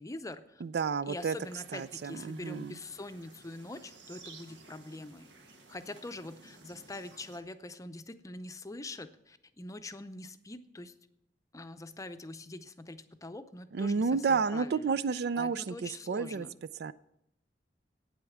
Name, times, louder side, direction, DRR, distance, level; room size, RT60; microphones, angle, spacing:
voice 1, 0.0-0.6 1.1-5.3 5.7-10.9 11.5-16.5, left 2 dB, 20° left, 10 dB, 0.6 m, -44 dB
voice 2, 0.6-1.4 1.7-2.8 13.7-16.5 16.8-16.9, right 5 dB, 65° right, 16 dB, 0.4 m, -31 dB
sound 1, 1.2-7.4, right 3 dB, 85° right, 1.4 m, -55 dB
9.0 x 8.0 x 7.2 m, 0.78 s
head